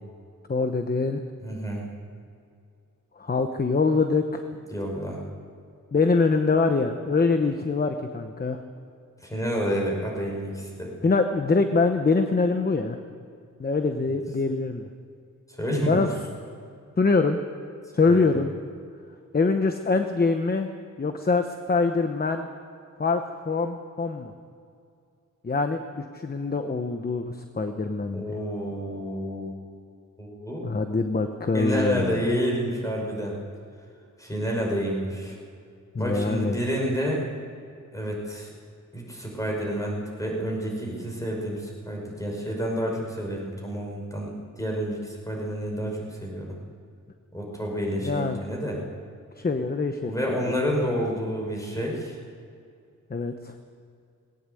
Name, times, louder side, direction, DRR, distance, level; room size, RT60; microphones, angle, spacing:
voice 1, 0.5-1.2 3.2-4.5 5.9-8.6 11.0-13.0 13.6-14.9 15.9-16.1 17.0-17.4 17.9-18.5 19.3-20.7 21.0-22.5 23.0-24.3 25.4-28.4 30.6-32.2 35.9-36.6 48.0-48.4 49.4-50.1 53.1-53.5, left 4 dB, 30° left, 6 dB, 0.9 m, -24 dB
voice 2, 1.4-1.8 4.7-5.2 9.2-10.9 15.6-16.0 18.1-18.2 28.1-29.5 30.2-30.6 31.5-33.3 34.2-35.4 36.0-37.2 37.9-38.5 38.9-44.3 44.6-46.6 47.3-48.8 50.0-52.2, equal, 10° left, -1 dB, 5.4 m, -29 dB
19.0 x 18.0 x 7.8 m, 2.4 s
wide cardioid pair, 160°, 32 cm